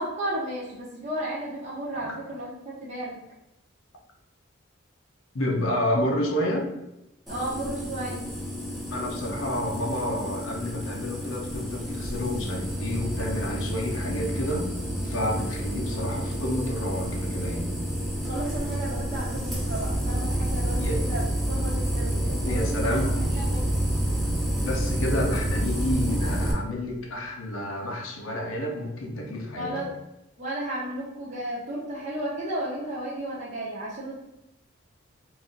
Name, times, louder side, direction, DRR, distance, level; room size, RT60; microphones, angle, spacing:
voice 1, 0.0-3.2 7.3-8.3 18.2-22.9 23.4-23.6 24.6-24.7 29.5-29.9 30.4-34.2, right 1 dB, 35° right, -7 dB, 0.9 m, -33 dB
voice 2, 5.3-6.7 8.9-14.7 15.0-17.7 20.8-21.0 22.4-23.1 24.6-29.7, left 1 dB, 90° left, 0 dB, 0.8 m, -29 dB
sound 1, 7.3-26.5, right 1 dB, ahead, 0.9 m, -29 dB
3.9 x 2.6 x 3.8 m, 0.90 s
head